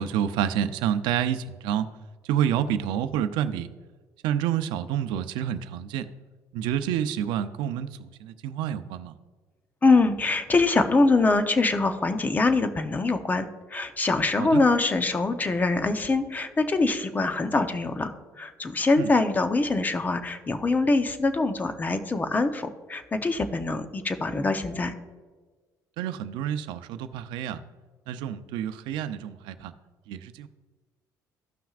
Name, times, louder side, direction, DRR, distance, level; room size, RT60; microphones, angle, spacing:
voice 1, 0.0-1.9 2.2-3.7 4.2-6.1 6.5-9.1 14.4-14.6 19.0-19.1 26.0-27.6 28.1-29.7 30.1-30.5, right 10 dB, 90° right, 11 dB, 0.5 m, -28 dB
voice 2, 9.8-24.9, left 3 dB, 20° left, 8 dB, 0.8 m, -24 dB
15.0 x 5.9 x 2.4 m, 1.4 s
cardioid pair, 110°, 8 cm